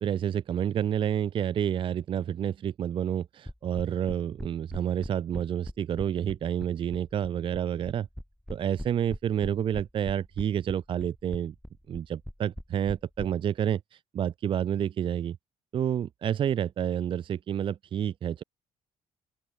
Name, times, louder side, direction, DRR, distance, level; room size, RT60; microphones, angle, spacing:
voice 1, 0.0-8.1 8.5-11.5 11.9-15.4 15.7-18.4, right 9 dB, 40° right, 0.5 m, -29 dB
sound 1, 3.5-13.3, equal, ahead, 0.6 m, -40 dB
open air
cardioid pair, 130°, 13 cm